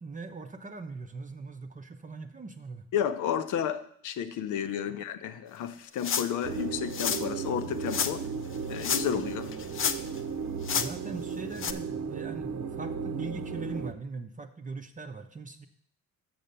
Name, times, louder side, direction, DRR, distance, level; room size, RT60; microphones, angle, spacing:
voice 1, 0.0-2.9 10.7-15.7, right 3 dB, 25° right, 0.7 m, -41 dB
voice 2, 2.9-8.3 8.7-9.5, left 9 dB, 80° left, 0.8 m, -32 dB
sound 1, 6.0-6.4 6.9-7.3 7.9-8.1 8.7-9.2 9.5-10.2 10.6-10.9 11.6-11.7, left 7 dB, 45° left, 0.6 m, -29 dB
sound 2, 6.4-13.9, right 6 dB, 65° right, 0.8 m, -35 dB
6.5 x 6.1 x 6.8 m
cardioid pair, 90°, 30 cm